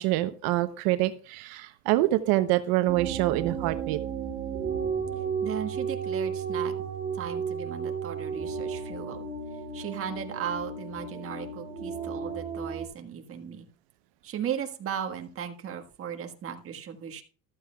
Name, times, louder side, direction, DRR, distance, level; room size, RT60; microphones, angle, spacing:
voice 1, 0.0-4.0, right 16 dB, 80° right, 10 dB, 0.8 m, -26 dB
sound 1, 2.9-12.9, right 6 dB, 20° right, 2.6 m, -33 dB
voice 2, 5.4-6.7 7.1-9.2 9.7-13.7 14.2-17.2, right 8 dB, 40° right, 4 dB, 1.5 m, -36 dB
14.5 x 12.5 x 2.3 m, 0.38 s
cardioid pair, 140°, 36 cm